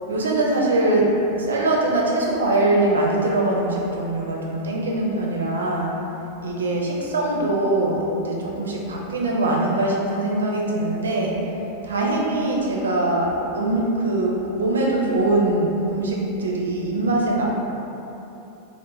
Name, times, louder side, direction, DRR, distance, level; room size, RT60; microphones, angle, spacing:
voice 1, 0.1-1.1 1.4-5.9 6.4-11.3 11.8-17.5, right 2 dB, 70° right, -2 dB, 0.5 m, -22 dB
3.3 x 2.1 x 3.0 m, 3.0 s
figure-of-eight pair, 90°, 0 cm